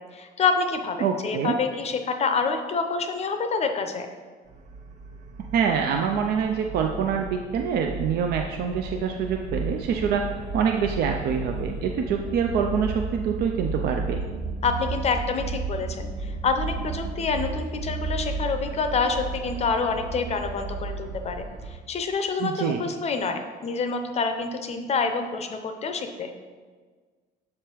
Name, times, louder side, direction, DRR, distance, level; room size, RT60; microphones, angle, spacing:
voice 1, 0.0-4.1 14.6-26.3, left 4 dB, 40° left, 6 dB, 0.5 m, -27 dB
voice 2, 1.0-1.6 5.5-14.2 22.4-22.8, right 7 dB, 70° right, 3 dB, 0.5 m, -25 dB
sound 1, 4.5-21.7, right 3 dB, 45° right, 1.1 m, -34 dB
7.1 x 3.3 x 4.5 m, 1.5 s
cardioid pair, 110°, 17 cm